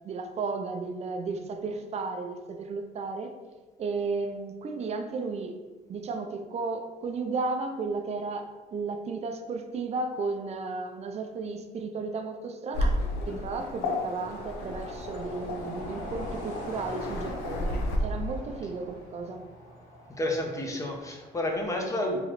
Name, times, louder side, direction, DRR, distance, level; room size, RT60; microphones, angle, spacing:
voice 1, 0.0-3.4 3.8-5.6 5.9-19.5, right 4 dB, 40° right, 6 dB, 0.4 m, -34 dB
Waves surf, 12.7-18.0, left 1 dB, 80° left, 0.6 m, -33 dB
sound 1, 13.1-21.6, left 1 dB, 50° left, 1.3 m, -43 dB
voice 2, 20.2-22.2, left 1 dB, 20° left, 1 dB, 0.6 m, -30 dB
3.7 x 3.1 x 3.0 m, 1.3 s
cardioid pair, 110°, 17 cm